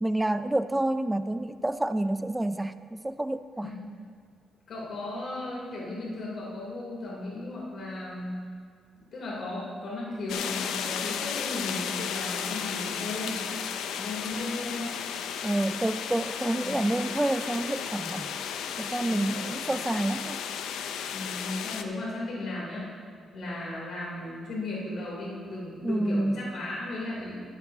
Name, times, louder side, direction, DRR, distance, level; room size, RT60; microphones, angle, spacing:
voice 1, 0.0-3.7 15.4-18.3 18.8-20.4 25.8-26.4, right 1 dB, 10° right, 12 dB, 0.4 m, -28 dB
voice 2, 4.7-8.4 9.0-13.4 14.0-14.9 16.6-16.9 19.0-19.5 21.1-22.9 23.3-27.4, left 2 dB, 65° left, -6 dB, 3.1 m, -36 dB
sound 1, 10.3-21.8, left 8 dB, 90° left, 0.6 m, -34 dB
15.0 x 11.0 x 2.8 m, 2.1 s
cardioid pair, 90°, 0 cm